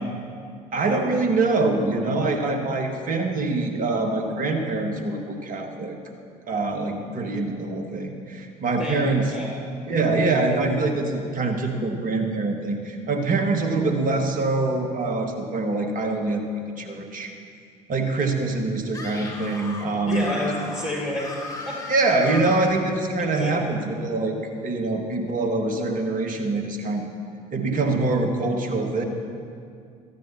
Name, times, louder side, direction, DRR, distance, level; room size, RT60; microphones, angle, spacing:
voice 1, 0.7-5.9 6.5-9.3 9.9-17.3 17.9-20.3 21.9-24.4 24.6-27.1 27.5-29.0, right 3 dB, 45° right, 4 dB, 1.7 m, -24 dB
voice 2, 8.8-9.5 20.1-21.3 21.6-21.7 23.4-23.5, left 1 dB, 85° left, -9 dB, 4.0 m, -29 dB
Screaming, 18.9-22.8, left 3 dB, 15° left, 2.2 m, -37 dB
17.5 x 14.0 x 2.9 m, 2.3 s
figure-of-eight pair, 50°, 20 cm